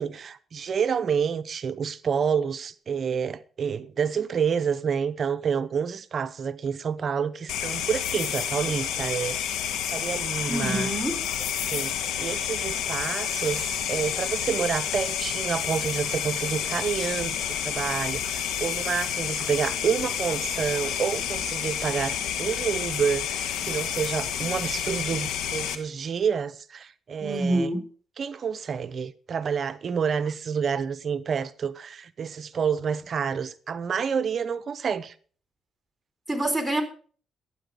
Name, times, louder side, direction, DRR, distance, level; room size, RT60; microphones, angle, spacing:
voice 1, 0.0-9.4 9.9-10.9 11.7-27.7 28.2-35.1, right 7 dB, 50° right, 0.8 m, -28 dB
sound 1, 7.5-25.7, left 9 dB, 85° left, 1.3 m, -29 dB
voice 2, 10.5-11.2 27.2-27.8 36.3-36.8, right 1 dB, ahead, 3.6 m, -26 dB
12.5 x 9.1 x 5.3 m
cardioid pair, 90°, 0 cm